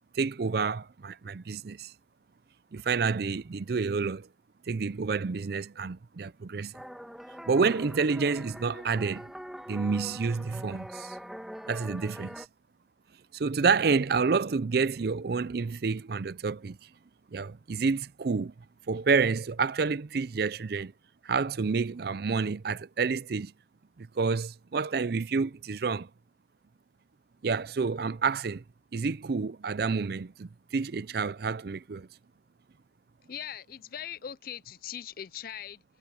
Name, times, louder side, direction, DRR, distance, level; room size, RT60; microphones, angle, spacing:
voice 1, 0.1-1.9 2.7-4.3 4.7-6.7 7.5-9.3 9.7-11.2 11.7-12.4 13.3-16.8 17.3-18.5 18.9-20.9 21.2-23.5 24.0-26.1 27.4-28.6 28.9-32.1, right 4 dB, 55° right, 0.5 m, -29 dB
sound 1, 6.7-12.5, equal, ahead, 1.6 m, -43 dB
voice 2, 33.3-35.8, left 9 dB, 50° left, 0.4 m, -40 dB
head